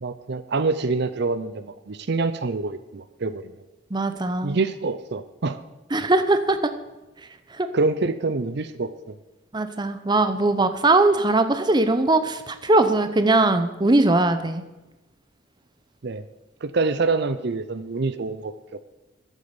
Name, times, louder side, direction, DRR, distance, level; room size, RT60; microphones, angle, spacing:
voice 1, 0.0-3.5 4.4-5.6 7.7-9.1 16.0-16.2 16.6-18.5, right 3 dB, 55° right, 13 dB, 0.6 m, -26 dB
voice 2, 3.9-4.6 5.9-6.7 7.5-7.7 9.5-14.6, right 2 dB, 20° right, 10 dB, 0.7 m, -20 dB
10.5 x 8.2 x 7.0 m, 1.0 s
head